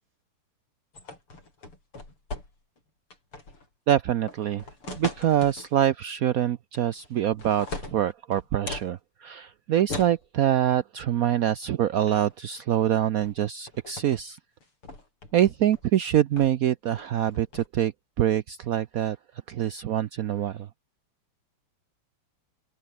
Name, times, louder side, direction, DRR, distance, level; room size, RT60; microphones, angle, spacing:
sound 1, 0.9-2.8 3.1-3.7 4.3-5.7 6.7-7.1 7.4-8.9 9.9-10.2 11.5-11.7 12.0-12.4 13.2-13.4 13.7-14.2 14.6-15.8 16.4-16.6 17.0-17.7, left 3 dB, 80° left, 8.2 m, -39 dB
voice 1, 3.9-14.4 15.3-19.2 19.5-20.7, right 11 dB, 75° right, 0.8 m, -25 dB
omnidirectional pair, 2.4 m